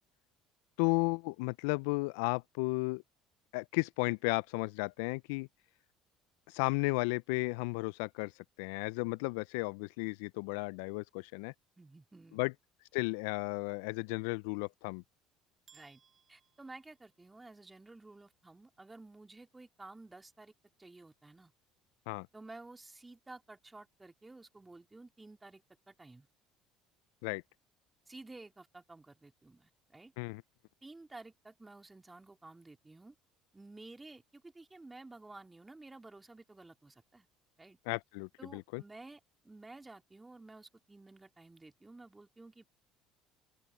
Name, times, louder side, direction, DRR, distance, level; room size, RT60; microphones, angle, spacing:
voice 1, 0.8-3.0 3.5-5.5 6.5-11.5 12.3-12.5 12.9-15.0 22.1-22.3 27.2-27.4 30.2-30.4 37.9-38.8, left 28 dB, 70° left, 0.5 m, -34 dB
voice 2, 11.8-12.5 15.7-16.0 16.3-20.5 20.8-21.5 22.3-26.3 28.1-30.1 30.8-33.2 33.5-37.3 37.6-37.8 38.4-42.7, right 2 dB, 15° right, 3.7 m, -53 dB
sound 1, 15.7-17.7, right 7 dB, 40° right, 5.1 m, -66 dB
open air
hypercardioid pair, 65°, 0 cm